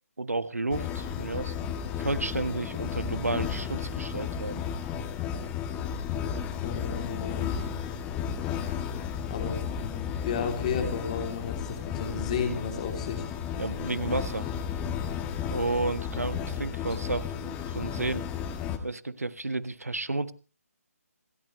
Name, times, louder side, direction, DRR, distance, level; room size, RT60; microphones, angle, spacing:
voice 1, 0.2-1.5 2.0-4.6 13.6-14.5 15.5-18.3 18.8-20.3, right 2 dB, 70° right, 1.4 m, -32 dB
sound 1, 0.7-18.8, left 8 dB, 10° left, 1.3 m, -33 dB
voice 2, 6.6-7.8 9.3-13.3, left 6 dB, 25° left, 3.1 m, -33 dB
27.5 x 13.5 x 3.2 m
figure-of-eight pair, 145°, 8 cm